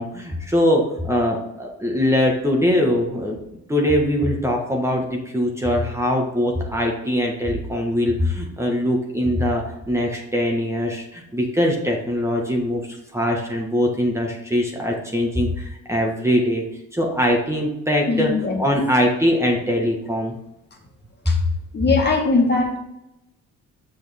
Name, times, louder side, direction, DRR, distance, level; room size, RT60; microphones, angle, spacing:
voice 1, 0.0-3.4 3.7-16.6 16.9-18.3 18.6-20.3 21.2-21.3, equal, 10° right, -1 dB, 1.6 m, -22 dB
voice 2, 18.1-18.6 21.3-21.4 21.7-22.8, left 3 dB, 35° left, 0 dB, 2.1 m, -20 dB
6.7 x 6.3 x 3.5 m, 0.89 s
cardioid pair, 90°, 30 cm